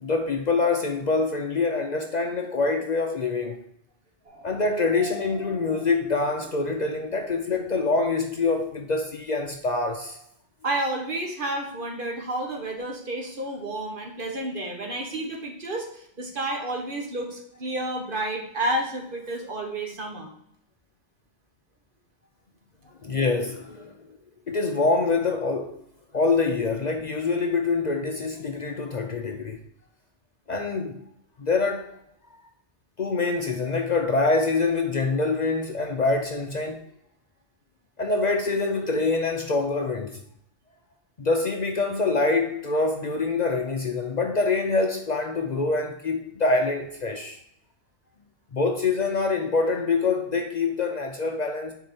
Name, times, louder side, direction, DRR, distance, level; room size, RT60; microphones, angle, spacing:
voice 1, 0.0-3.6 4.4-10.2 23.0-24.0 24.5-25.8 26.1-29.6 30.5-31.0 31.4-31.9 33.0-36.8 38.0-40.2 41.2-47.4 48.5-51.7, left 3 dB, 45° left, 0.7 m, -25 dB
sound 1, 4.3-8.0, left 1 dB, 80° right, 2.2 m, -44 dB
voice 2, 10.6-20.3, right 1 dB, 50° right, 1.4 m, -30 dB
6.5 x 4.7 x 4.3 m
omnidirectional pair, 1.1 m